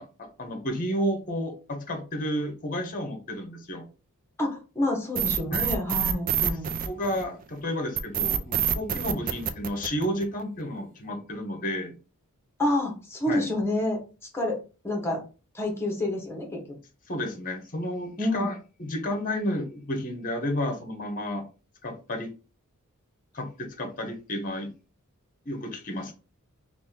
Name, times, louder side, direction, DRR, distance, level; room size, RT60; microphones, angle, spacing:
voice 1, 0.0-3.8 5.5-5.7 6.4-6.6 6.8-11.9 13.3-13.5 17.1-21.4 21.8-22.3 23.3-24.7 25.5-26.1, equal, 40° left, 0.8 m, -31 dB
voice 2, 4.4-6.7 12.6-14.0 14.3-14.6 14.8-15.2 15.5-16.6 18.2-18.5, left 1 dB, 10° left, 1.1 m, -28 dB
sound 1, 5.2-7.4 8.0-10.4, right 9 dB, 40° right, 0.3 m, -26 dB
2.9 x 2.5 x 3.8 m
head